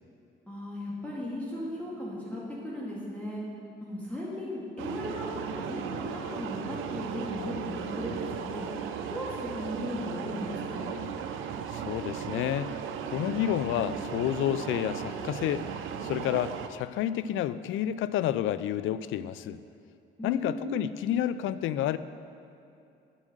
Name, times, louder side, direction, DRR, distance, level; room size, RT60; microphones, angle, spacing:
voice 1, 0.5-3.4 3.8-8.7 9.1-10.9 20.2-20.8, left 1 dB, 5° left, -7 dB, 2.1 m, -36 dB
sound 1, 4.8-16.7, right 7 dB, 85° right, 0.6 m, -36 dB
voice 2, 11.7-12.8 13.1-15.7 16.0-19.6 20.2-22.0, left 11 dB, 85° left, 15 dB, 0.4 m, -30 dB
8.4 x 7.5 x 6.5 m, 2.6 s
cardioid pair, 90°, 20 cm